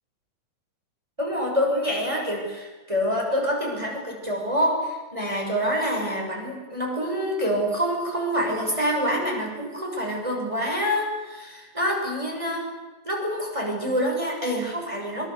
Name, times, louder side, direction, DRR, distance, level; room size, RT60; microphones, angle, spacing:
voice 1, 1.2-12.7 13.0-15.3, equal, 10° right, 0 dB, 6.0 m, -26 dB
27.0 x 22.0 x 8.3 m, 1.2 s
omnidirectional pair, 4.2 m